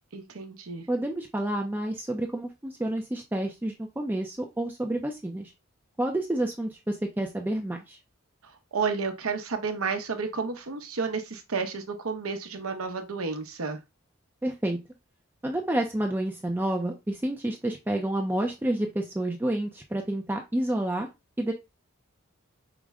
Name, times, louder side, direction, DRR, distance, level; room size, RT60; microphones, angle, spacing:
voice 1, 0.1-0.9 8.7-13.8, right 5 dB, 80° right, 0.8 m, -31 dB
voice 2, 0.9-5.5 6.0-8.0 14.4-14.8 15.4-21.1 21.4-21.5, right 1 dB, 10° right, 0.4 m, -29 dB
4.9 x 2.1 x 3.4 m
head